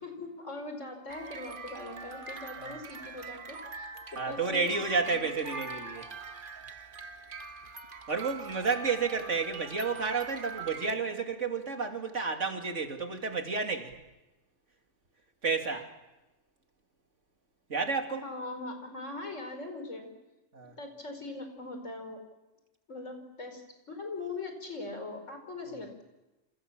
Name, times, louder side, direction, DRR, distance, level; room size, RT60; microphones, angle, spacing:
voice 1, 0.0-5.2 18.1-20.1 20.8-22.2 22.9-23.6 23.9-26.0, left 2 dB, 90° left, 5 dB, 5.3 m, -41 dB
sound 1, 1.1-10.9, right 4 dB, 45° right, 1.4 m, -43 dB
voice 2, 4.2-6.1 8.1-13.9 15.4-15.9 17.7-18.2 20.5-20.8, right 4 dB, 80° right, 4 dB, 3.1 m, -31 dB
27.5 x 26.5 x 7.4 m, 1.0 s
omnidirectional pair, 1.2 m